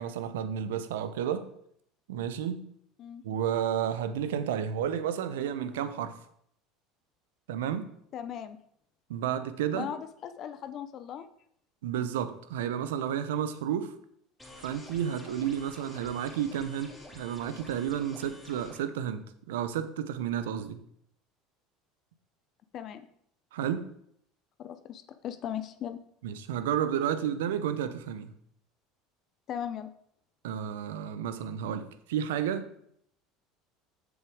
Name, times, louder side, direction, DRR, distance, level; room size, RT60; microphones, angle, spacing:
voice 1, 0.0-1.5 2.1-2.6 3.2-6.2 7.5-7.9 9.1-9.9 11.8-13.9 14.6-20.8 23.5-23.9 26.2-28.3 30.4-32.7, right 9 dB, 85° right, 12 dB, 0.7 m, -31 dB
voice 2, 8.1-8.6 9.7-11.3 22.7-23.0 24.6-26.0 29.5-29.9, left 9 dB, 50° left, 10 dB, 0.7 m, -38 dB
sound 1, 14.4-18.8, left 1 dB, 5° left, 3.4 m, -49 dB
7.2 x 7.0 x 4.9 m, 0.70 s
hypercardioid pair, 85°, 0 cm